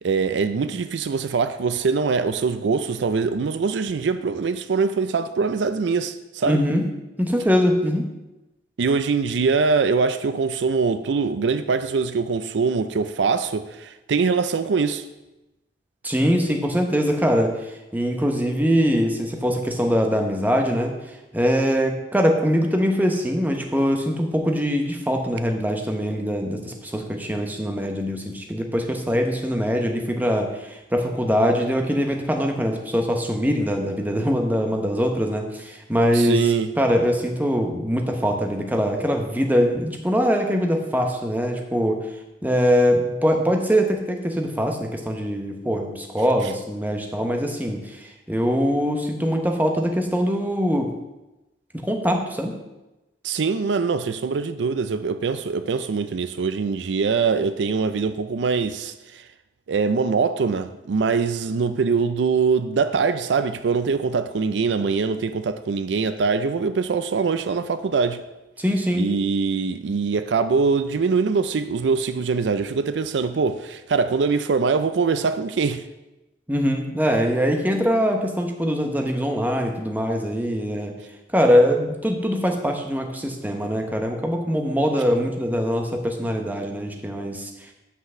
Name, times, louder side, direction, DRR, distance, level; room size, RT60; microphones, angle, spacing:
voice 1, 0.0-6.6 8.8-15.0 36.1-36.7 53.2-59.2 59.7-68.2 68.9-75.8, right 5 dB, 80° right, 0.4 m, -23 dB
voice 2, 6.4-6.8 7.2-8.1 16.0-36.4 36.8-42.0 42.4-50.9 51.8-52.6 68.6-69.1 76.5-80.9 81.3-87.5, equal, 10° right, 0.9 m, -22 dB
5.9 x 5.6 x 6.8 m
head